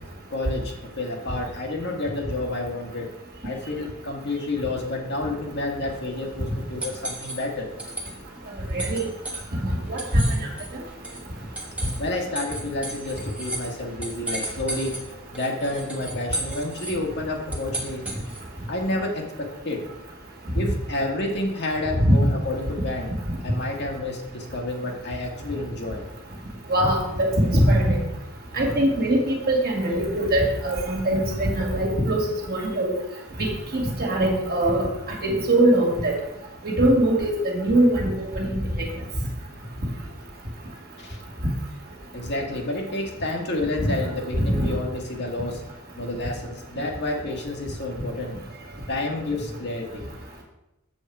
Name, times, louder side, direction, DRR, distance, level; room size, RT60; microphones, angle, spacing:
voice 1, 0.3-3.1 3.4-7.7 12.0-15.0 15.3-18.0 18.7-19.9 20.5-23.1 23.4-26.1 41.0-41.2 42.1-45.6 46.0-48.4 48.9-50.1, left 2 dB, 50° left, 1 dB, 1.5 m, -30 dB
sound 1, 5.7-18.6, right 1 dB, 5° right, 1.2 m, -36 dB
voice 2, 8.7-9.0 9.6-10.0 22.1-22.2 26.7-28.0 28.5-32.9 33.7-34.9 35.2-36.1 36.6-38.6 43.8-43.9 44.5-44.7, right 1 dB, 45° right, -1 dB, 2.1 m, -22 dB
7.2 x 7.1 x 4.6 m, 0.90 s
head